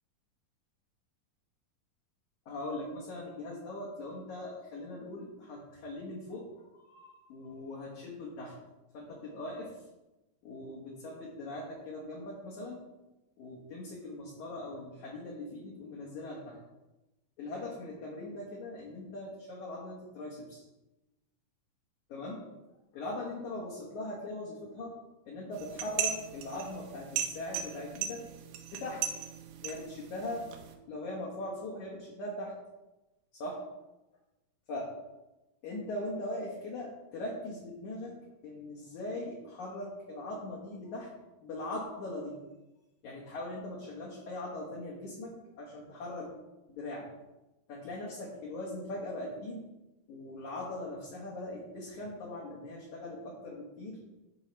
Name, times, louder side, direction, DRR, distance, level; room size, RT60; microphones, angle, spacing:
voice 1, 2.5-6.5 6.8-8.5 8.9-9.8 10.4-12.8 13.4-16.6 17.4-20.6 22.1-22.4 22.9-24.9 25.3-28.2 28.7-29.0 29.6-30.5 30.9-32.5 33.4-33.6 34.7-34.9 35.6-38.2 38.4-41.1 41.4-42.3 43.0-46.3 46.7-47.1 47.7-49.7 50.1-54.0, left 1 dB, 60° left, -5 dB, 2.3 m, -40 dB
sound 1, 25.5-30.7, right 9 dB, 80° right, 2.5 m, -38 dB
12.5 x 4.7 x 3.2 m, 1.0 s
omnidirectional pair, 4.5 m